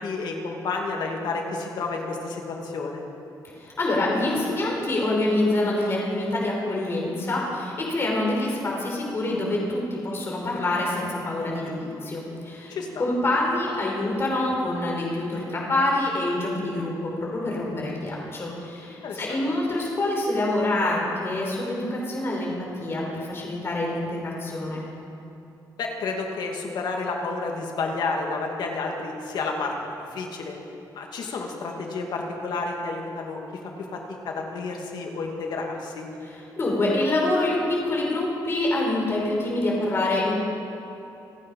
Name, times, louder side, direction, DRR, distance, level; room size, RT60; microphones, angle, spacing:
voice 1, 0.0-3.0 12.7-13.0 18.9-19.4 25.8-29.7 30.1-30.6 30.9-33.4 33.9-36.1, left 3 dB, 70° left, 1 dB, 2.3 m, -30 dB
voice 2, 3.6-24.8 36.2-40.3, left 2 dB, 35° left, -2 dB, 4.4 m, -26 dB
27.5 x 9.1 x 5.5 m, 2.9 s
cardioid pair, 140°, 8 cm